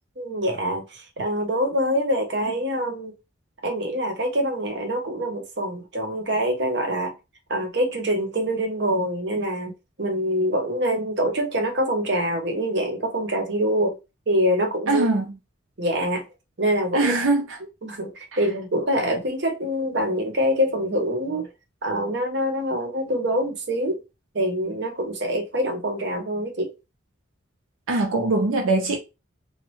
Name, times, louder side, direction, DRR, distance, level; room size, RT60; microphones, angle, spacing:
voice 1, 0.2-3.1 3.6-7.1 7.5-9.7 10.0-14.0 14.3-15.1 15.8-16.2 16.6-17.2 17.8-21.5 21.8-24.0 24.3-26.7, equal, 55° right, 0.8 m, -25 dB
voice 2, 14.9-15.4 16.9-17.6 18.3-18.4 27.9-29.0, right 2 dB, 80° right, 0.6 m, -22 dB
3.1 x 2.3 x 3.1 m
head